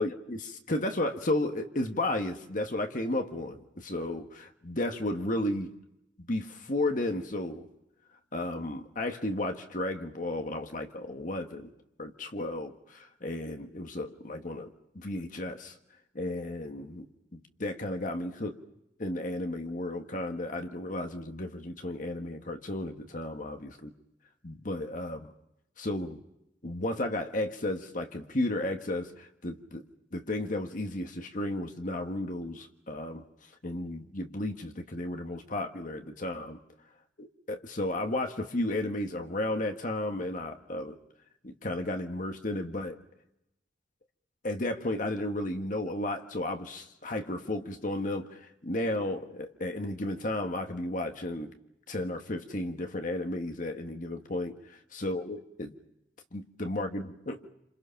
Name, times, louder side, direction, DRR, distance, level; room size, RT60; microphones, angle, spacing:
voice 1, 0.0-5.7 6.3-7.7 8.3-11.7 12.0-15.7 16.1-17.0 17.3-18.6 19.0-23.9 24.4-25.3 25.8-26.2 26.6-29.8 30.1-33.2 33.6-36.6 37.2-41.0 41.4-43.0 44.4-51.5 51.9-55.7 56.3-57.5, left 1 dB, 45° left, 5 dB, 1.5 m, -33 dB
28.0 x 27.5 x 5.8 m, 0.86 s
head